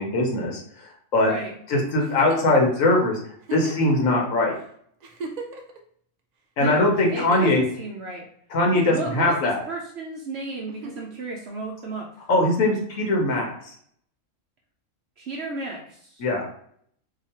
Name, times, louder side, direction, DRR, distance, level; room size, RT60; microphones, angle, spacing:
voice 1, 0.0-1.3 1.7-3.2 3.5-4.6 6.6-7.6 8.5-9.6 12.3-13.7 16.2-16.5, left 2 dB, 85° left, 0 dB, 1.2 m, -21 dB
Giggle, 2.0-2.6 3.4-3.9 4.6-4.7 5.0-5.8 6.9-7.6 8.7-9.4 10.7-11.1 12.6-12.7, right 3 dB, 85° right, 0.3 m, -37 dB
voice 2, 6.6-8.2 8.8-9.3 9.7-12.1 15.2-16.2, right 3 dB, 60° right, -1 dB, 0.8 m, -34 dB
2.8 x 2.4 x 4.1 m, 0.63 s
omnidirectional pair, 1.3 m